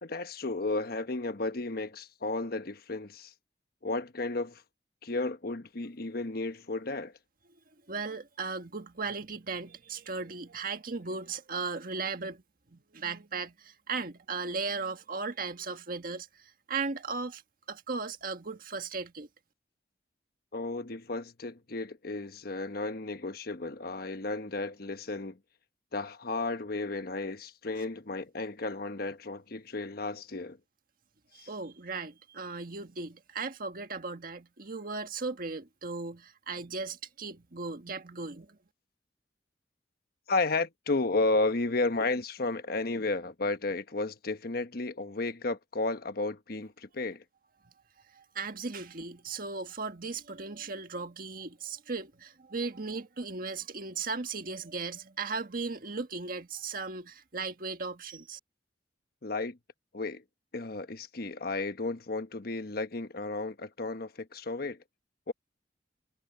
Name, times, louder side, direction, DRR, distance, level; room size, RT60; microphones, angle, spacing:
voice 1, 0.0-3.3 3.8-4.6 5.0-7.1 20.5-25.4 25.9-30.6 31.4-31.5 40.3-47.2 59.2-59.6 59.9-60.2 60.5-64.8 65.3-65.4, left 3 dB, 60° left, 1.2 m, -33 dB
voice 2, 7.9-12.4 12.7-17.4 17.7-19.3 31.3-38.6 48.1-58.4, right 4 dB, 55° right, 1.6 m, -37 dB
head